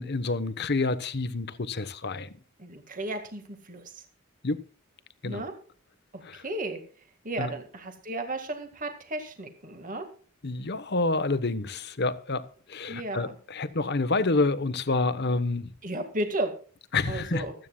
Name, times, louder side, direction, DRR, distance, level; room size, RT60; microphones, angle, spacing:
voice 1, 0.0-2.3 4.4-4.6 5.2-5.4 6.2-6.4 7.4-7.5 10.4-15.7 16.9-17.4, left 3 dB, 55° left, 1.1 m, -28 dB
voice 2, 2.6-4.0 5.2-5.5 6.1-6.8 7.2-10.1 12.9-13.4 15.8-16.5 17.1-17.5, right 2 dB, 40° right, 2.0 m, -34 dB
25.5 x 9.3 x 2.4 m
head